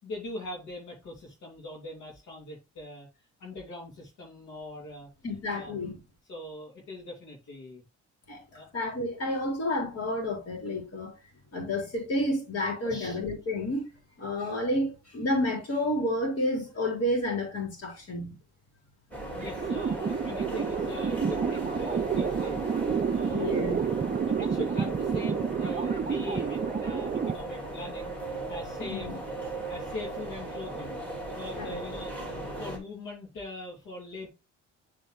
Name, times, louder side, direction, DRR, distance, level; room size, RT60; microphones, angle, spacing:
voice 1, 0.0-3.1 3.4-5.1 5.5-5.7 6.3-7.8 8.5-8.7 12.8-13.2 19.3-22.7 23.1-23.6 24.2-28.2 28.5-29.2 29.7-31.0 31.3-32.1 32.6-34.3, left 2 dB, 75° left, 2.9 m, -41 dB
voice 2, 5.2-6.0 8.3-8.4 8.7-11.1 11.5-13.9 14.2-18.4 23.2-23.8 28.8-29.2 31.6-31.8, left 1 dB, 55° left, 3.6 m, -30 dB
sound 1, 19.1-32.8, right 2 dB, 5° left, 2.7 m, -37 dB
sound 2, 19.4-27.4, right 6 dB, 30° right, 0.6 m, -29 dB
7.5 x 4.5 x 3.1 m
cardioid pair, 90°, 30 cm